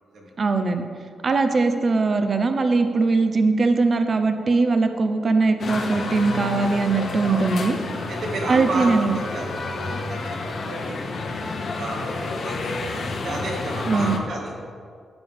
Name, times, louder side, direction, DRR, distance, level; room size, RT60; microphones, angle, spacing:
voice 1, 0.4-0.8 1.2-7.8 8.5-9.2 13.9-14.2, right 3 dB, 40° right, 7 dB, 0.7 m, -20 dB
sound 1, 5.6-14.2, left 3 dB, 55° left, 1.1 m, -30 dB
voice 2, 7.2-7.5 8.1-11.3 11.7-14.5, right 2 dB, 75° right, -2 dB, 2.2 m, -32 dB
12.0 x 8.9 x 3.6 m, 2.2 s
wide cardioid pair, 140°, 0 cm